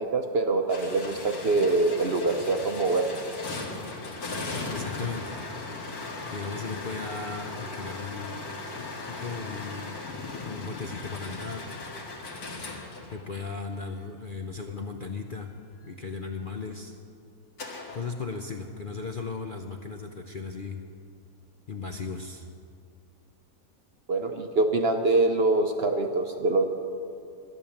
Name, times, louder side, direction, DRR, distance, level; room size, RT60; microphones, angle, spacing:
voice 1, 0.0-3.1 24.1-26.6, right 3 dB, 50° right, 5 dB, 0.8 m, -24 dB
sound 1, 0.7-13.7 17.6-18.1, left 3 dB, 75° left, 2.3 m, -37 dB
voice 2, 4.7-5.4 6.3-8.5 8.8-10.0 10.5-11.7 13.1-15.5 15.8-17.0 17.9-20.8 21.7-22.5, left 4 dB, 50° left, 3 dB, 0.6 m, -36 dB
13.5 x 10.5 x 7.2 m, 2.5 s
omnidirectional pair, 1.7 m